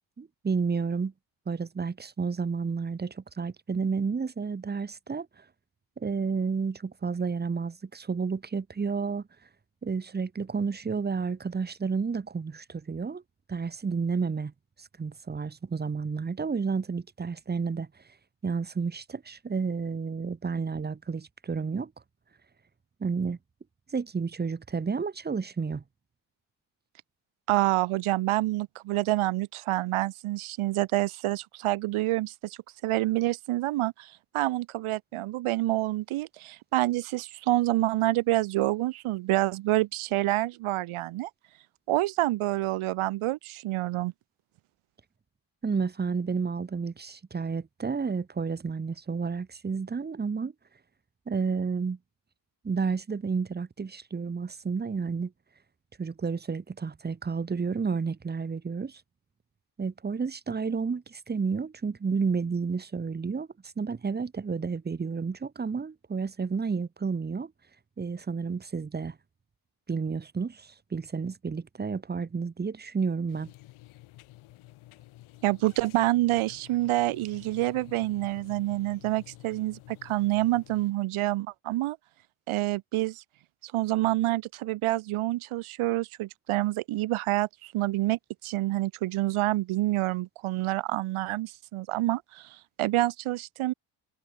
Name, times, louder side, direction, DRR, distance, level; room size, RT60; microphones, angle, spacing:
voice 1, 0.2-1.1 1.5-5.3 6.0-9.2 9.8-13.2 13.5-14.5 14.8-17.9 18.4-21.9 23.0-23.4 23.9-25.8 45.6-50.5 51.3-52.0 52.6-55.3 56.0-59.0 59.8-67.5 68.0-69.2 69.9-73.5, right 5 dB, 20° right, 1.2 m, -31 dB
voice 2, 27.5-41.3 41.9-44.1 75.4-82.0 82.5-83.2 83.6-93.7, right 17 dB, 85° right, 2.4 m, -27 dB
sound 1, 73.3-80.9, left 17 dB, 85° left, 5.7 m, -50 dB
cardioid pair, 115°, 48 cm